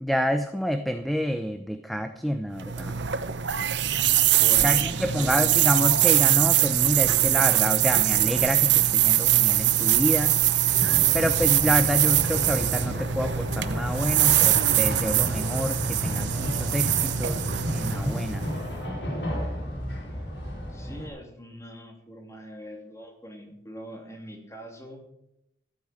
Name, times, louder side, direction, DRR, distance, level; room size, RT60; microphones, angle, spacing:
voice 1, 0.0-3.0 4.6-10.4 11.1-18.5, equal, ahead, 8 dB, 0.6 m, -28 dB
sound 1, 2.6-18.7, right 12 dB, 75° right, 0.8 m, -23 dB
voice 2, 4.2-5.5 20.7-25.0, equal, 15° left, 2 dB, 2.9 m, -42 dB
sound 2, 10.7-21.1, equal, 70° left, 3.8 m, -32 dB
14.0 x 9.2 x 7.6 m, 0.82 s
head